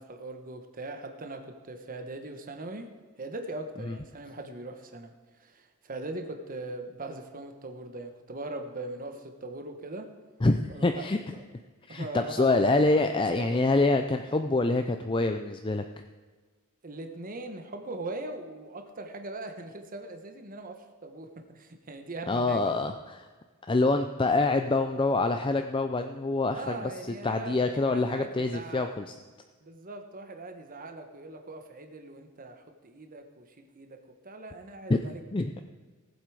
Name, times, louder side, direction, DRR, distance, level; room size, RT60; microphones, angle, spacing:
voice 1, 0.0-10.2 10.7-11.1 11.3-11.4 11.9-12.6 13.0-13.7 16.8-22.8 26.5-28.9 29.6-35.2, right 2 dB, 40° right, 6 dB, 1.2 m, -40 dB
voice 2, 10.4-11.4 11.9-15.8 22.3-23.2 23.7-26.9 27.2-29.1 34.9-35.0 35.3-35.6, left 2 dB, 25° left, 6 dB, 0.5 m, -26 dB
18.5 x 7.9 x 4.9 m, 1.4 s
head